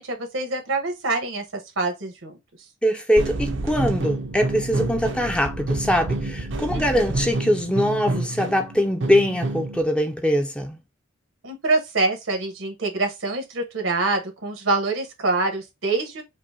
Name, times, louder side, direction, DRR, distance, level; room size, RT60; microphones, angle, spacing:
voice 1, 0.0-1.4 1.8-2.4 6.7-7.0 11.4-16.2, right 3 dB, 85° right, 1.2 m, -25 dB
voice 2, 2.8-10.8, equal, 5° left, 0.4 m, -22 dB
sound 1, 3.2-9.8, right 2 dB, 65° right, 0.6 m, -28 dB
5.2 x 2.1 x 2.7 m
head